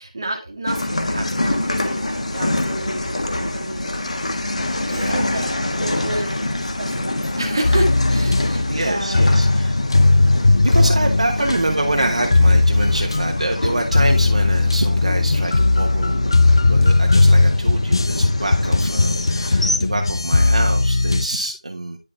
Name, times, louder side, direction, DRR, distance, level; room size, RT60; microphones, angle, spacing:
voice 1, 0.0-4.1 5.0-6.3 6.8-9.3, right 1 dB, 30° right, 1 dB, 1.8 m, -30 dB
sound 1, 0.7-19.8, left 1 dB, 55° left, 1.4 m, -26 dB
voice 2, 4.9-5.6 5.9-6.1 8.7-9.8 10.6-16.4 16.7-22.0, right 2 dB, 55° right, 1 dB, 1.2 m, -26 dB
sound 2, 7.6-21.3, left 2 dB, 40° left, 0.5 m, -17 dB
10.5 x 4.1 x 3.4 m, 0.30 s
figure-of-eight pair, 175°, 4 cm